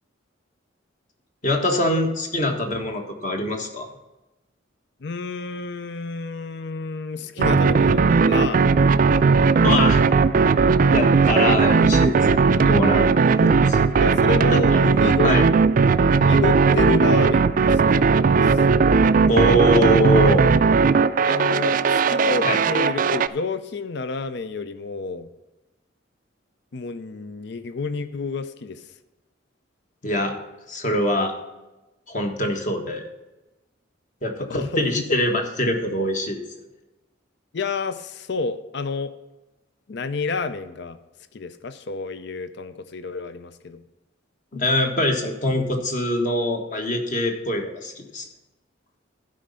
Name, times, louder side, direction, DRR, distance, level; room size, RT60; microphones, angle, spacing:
voice 1, 1.4-3.9 9.6-10.0 10.9-12.4 12.6-13.1 13.4-13.8 14.7-14.8 15.2-15.4 19.3-20.5 22.4-22.6 30.0-30.4 30.7-31.3 32.1-33.1 34.2-36.4 44.5-48.2, equal, 40° left, 3 dB, 1.4 m, -23 dB
voice 2, 5.0-8.8 14.0-15.3 16.2-18.6 21.3-25.3 26.7-28.8 34.4-35.2 37.5-39.1 39.9-41.0 41.3-43.8, left 4 dB, 60° left, 12 dB, 0.5 m, -30 dB
sound 1, 7.4-23.3, right 4 dB, 45° right, 0.3 m, -17 dB
12.5 x 5.1 x 5.5 m, 1.0 s
head